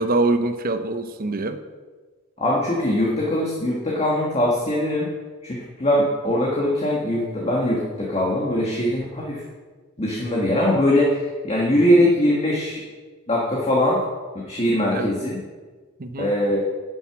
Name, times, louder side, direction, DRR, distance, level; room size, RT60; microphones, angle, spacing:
voice 1, 0.0-1.6 14.9-15.1 16.0-16.3, right 2 dB, 40° right, 9 dB, 0.8 m, -24 dB
voice 2, 2.4-5.1 5.4-9.4 10.0-12.8 13.3-14.0 14.4-15.4 16.2-16.6, left 1 dB, 30° left, -4 dB, 1.7 m, -21 dB
11.0 x 7.9 x 6.1 m, 1.4 s
head